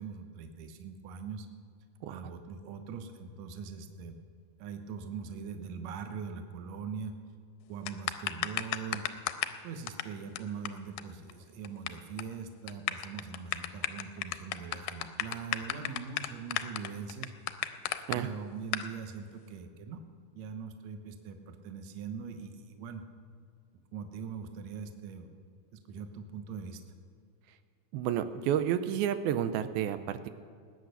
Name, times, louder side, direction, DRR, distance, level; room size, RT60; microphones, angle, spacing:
voice 1, 0.0-1.5 2.1-4.2 4.6-7.1 7.7-9.3 9.6-17.3 18.1-20.0 20.3-23.0 23.7-25.3 25.7-26.8, right 6 dB, 65° right, 6 dB, 1.9 m, -42 dB
sound 1, 7.9-9.6 9.9-10.0 10.4-10.5 10.7-10.8 11.0-11.1 11.3-11.9 12.2-12.3 12.7-18.2 18.7-18.9, left 14 dB, 80° left, 2.1 m, -33 dB
voice 2, 27.9-30.3, right 10 dB, 90° right, 10 dB, 2.6 m, -30 dB
20.0 x 9.1 x 6.7 m, 2.2 s
omnidirectional pair, 4.3 m